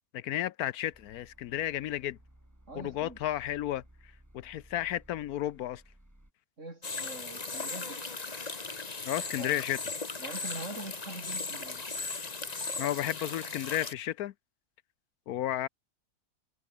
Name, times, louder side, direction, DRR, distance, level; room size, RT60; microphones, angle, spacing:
voice 1, 0.1-2.2 2.8-3.8 4.3-5.8 9.1-9.8 12.8-14.3 15.3-15.7, left 12 dB, 80° left, 1.1 m, -32 dB
sound 1, 0.9-6.3, right 1 dB, 10° right, 4.5 m, -58 dB
voice 2, 2.7-3.2 6.6-8.0 9.4-9.6 10.2-11.8, right 2 dB, 50° right, 5.1 m, -43 dB
sound 2, 6.8-13.9, left 4 dB, 25° left, 1.5 m, -37 dB
omnidirectional pair, 1.6 m